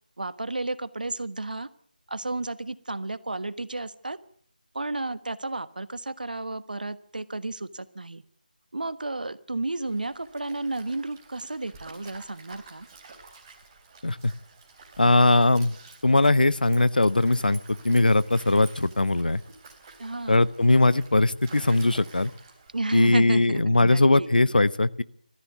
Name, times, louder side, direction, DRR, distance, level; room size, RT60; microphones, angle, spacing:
voice 1, 0.2-1.7 2.1-4.2 4.7-8.2 8.7-12.9 20.0-20.5 22.7-24.4, right 2 dB, 65° right, 15 dB, 1.4 m, -32 dB
Stream, 9.9-22.9, right 4 dB, 20° right, 3.6 m, -50 dB
voice 2, 15.0-15.8 16.0-17.6 17.8-19.4 20.3-22.3 22.9-25.0, left 2 dB, 70° left, 17 dB, 1.0 m, -20 dB
21.0 x 14.5 x 9.4 m, 0.62 s
figure-of-eight pair, 160°, 5 cm